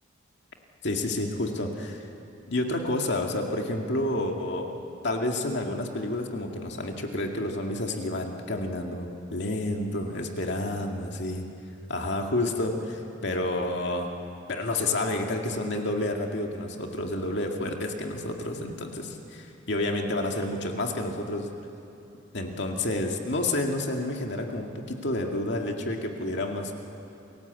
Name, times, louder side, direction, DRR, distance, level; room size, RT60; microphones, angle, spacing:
voice 1, 0.8-2.1 2.5-4.7 5.0-11.4 11.9-14.1 14.5-21.5 22.3-26.7, left 1 dB, 60° left, 2 dB, 2.2 m, -29 dB
28.5 x 17.0 x 8.2 m, 2.7 s
head